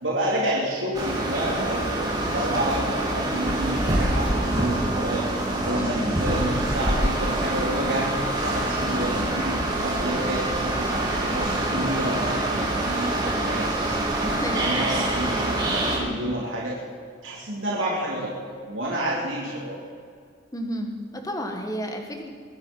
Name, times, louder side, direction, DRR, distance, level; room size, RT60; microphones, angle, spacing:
voice 1, 0.0-5.3 5.7-8.1 8.4-16.8 17.2-18.3 18.7-19.8, right 1 dB, 80° right, -6 dB, 3.6 m, -29 dB
sound 1, 0.9-16.0, right 1 dB, 20° right, 3.2 m, -25 dB
voice 2, 5.7-6.2 14.3-14.8 15.3-15.6 20.5-22.3, equal, 20° left, 3 dB, 1.6 m, -32 dB
24.0 x 10.0 x 5.6 m, 2.1 s
head